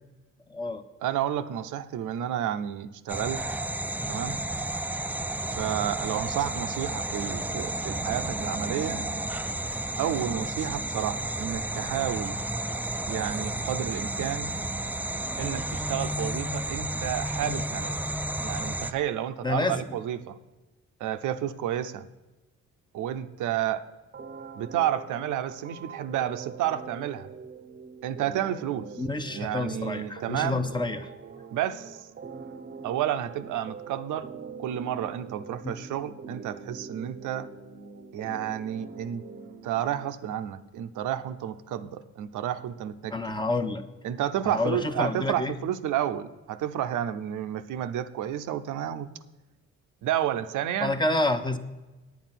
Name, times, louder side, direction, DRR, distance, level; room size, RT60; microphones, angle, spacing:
voice 1, 0.5-0.8 19.4-20.0 29.0-31.1 35.6-35.8 43.1-43.8 44.4-45.6 50.8-51.6, left 2 dB, 15° left, 8 dB, 0.8 m, -28 dB
voice 2, 1.0-3.4 4.1-4.4 5.5-9.0 10.0-12.4 13.1-14.5 15.4-18.0 18.4-20.4 21.0-22.1 22.9-23.8 24.6-27.3 28.0-28.9 29.3-30.6 31.5-32.1 32.8-34.3 34.6-37.5 38.1-39.2 39.6-43.1 44.0-49.1 50.0-51.0, right 11 dB, 80° right, 9 dB, 0.7 m, -31 dB
sound 1, 3.1-18.9, right 1 dB, 5° right, 0.4 m, -32 dB
sound 2, 24.1-40.1, right 5 dB, 35° right, 0.7 m, -43 dB
9.3 x 8.8 x 5.9 m, 1.1 s
cardioid pair, 90°, 30 cm